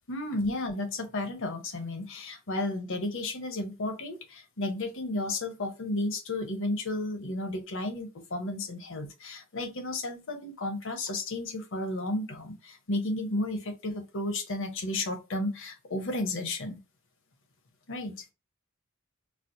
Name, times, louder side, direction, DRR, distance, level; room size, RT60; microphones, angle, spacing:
voice 1, 0.1-16.8 17.9-18.2, left 2 dB, 60° left, 0.8 m, -33 dB
4.4 x 2.0 x 2.6 m
head